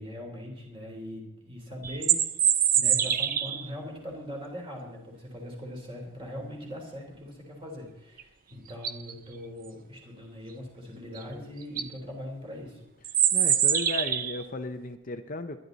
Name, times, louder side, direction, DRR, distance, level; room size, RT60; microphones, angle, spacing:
voice 1, 0.0-2.2 2.8-12.8, equal, 25° right, 0 dB, 3.6 m, -41 dB
sound 1, 1.8-3.7 8.2-8.3 8.7-9.1 11.2-11.3 11.6-11.9 13.0-14.4, right 9 dB, 40° right, 0.7 m, -24 dB
voice 2, 13.3-15.6, left 2 dB, 40° left, 7 dB, 0.7 m, -35 dB
21.5 x 11.0 x 4.0 m, 0.89 s
head